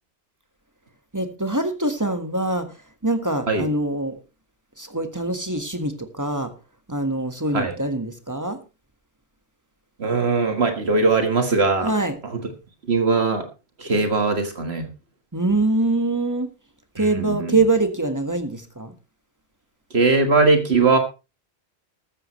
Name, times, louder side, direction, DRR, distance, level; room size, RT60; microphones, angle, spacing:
voice 1, 1.1-4.2 4.8-6.5 6.9-8.6 11.8-12.2 15.3-16.5 16.9-18.9, right 2 dB, 15° right, 7 dB, 1.6 m, -24 dB
voice 2, 10.0-11.9 12.9-13.4 13.8-14.9 17.2-17.5 19.9-21.0, right 3 dB, 70° right, 6 dB, 2.0 m, -20 dB
14.0 x 14.0 x 3.2 m, 0.29 s
omnidirectional pair, 1.1 m